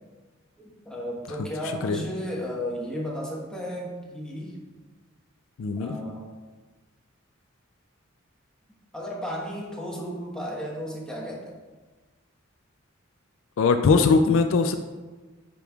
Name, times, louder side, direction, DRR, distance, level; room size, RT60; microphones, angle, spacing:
voice 1, 0.8-4.6 5.8-6.3 8.9-11.5, equal, 5° left, -3 dB, 1.2 m, -34 dB
voice 2, 5.6-6.0 13.6-14.8, left 4 dB, 65° left, 8 dB, 0.4 m, -20 dB
9.2 x 5.3 x 2.3 m, 1.3 s
head